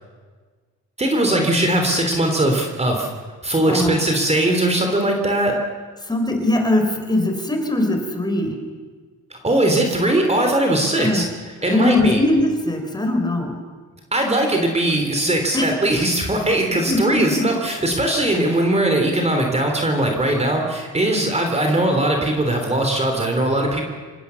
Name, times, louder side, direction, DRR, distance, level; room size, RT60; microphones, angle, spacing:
voice 1, 1.0-3.1 3.4-5.6 9.3-11.2 11.6-12.2 14.1-23.8, right 1 dB, 20° right, 3 dB, 3.4 m, -20 dB
voice 2, 3.7-4.0 6.0-8.6 10.9-11.3 11.6-13.5 15.5-15.7 16.9-17.5, left 1 dB, 15° left, 4 dB, 4.6 m, -21 dB
27.0 x 16.5 x 7.0 m, 1.5 s
cardioid pair, 90°, 30 cm